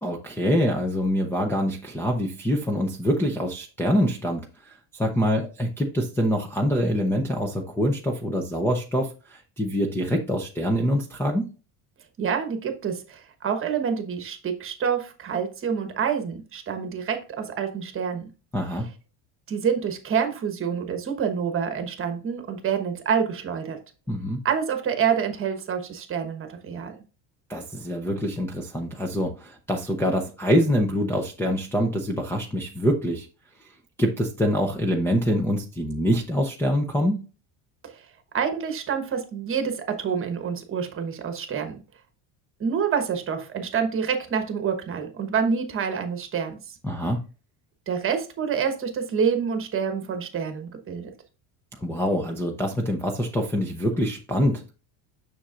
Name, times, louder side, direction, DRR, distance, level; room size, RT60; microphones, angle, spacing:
voice 1, 0.0-11.5 18.5-18.9 24.1-24.4 27.5-33.3 34.0-37.2 46.8-47.2 51.8-54.7, equal, 5° left, 0.5 m, -25 dB
voice 2, 12.2-18.3 19.5-23.8 24.4-27.0 37.8-38.0 38.3-41.8 42.6-46.6 47.9-51.1, right 7 dB, 30° right, 1.2 m, -27 dB
7.0 x 6.3 x 2.5 m
cardioid pair, 150°, 44 cm